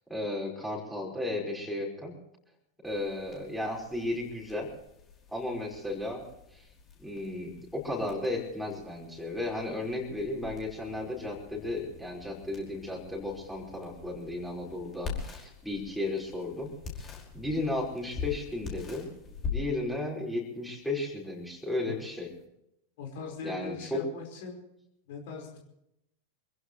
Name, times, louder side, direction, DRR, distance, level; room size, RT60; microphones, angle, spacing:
voice 1, 0.1-2.1 2.8-4.7 5.3-6.2 6.5-6.7 7.0-16.7 17.0-17.1 17.3-19.1 19.5-22.3 23.4-24.0, left 2 dB, ahead, -4 dB, 5.3 m, -34 dB
sound 1, 2.8-22.4, left 5 dB, 25° left, 5.3 m, -44 dB
voice 2, 23.0-24.6 25.1-25.6, left 5 dB, 50° left, 2 dB, 5.0 m, -40 dB
26.5 x 16.0 x 3.2 m, 0.81 s
figure-of-eight pair, 90°, 0 cm